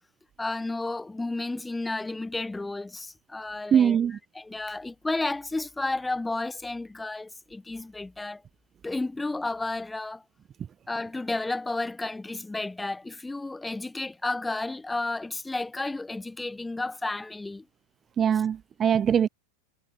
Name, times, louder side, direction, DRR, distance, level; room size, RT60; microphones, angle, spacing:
voice 1, 0.4-4.0 4.3-8.4 8.8-10.2 10.9-17.6 18.8-18.9, left 2 dB, 5° left, 4.3 m, -32 dB
voice 2, 3.7-4.2 18.2-19.3, right 8 dB, 25° right, 0.9 m, -22 dB
figure-of-eight pair, 90°, 0 cm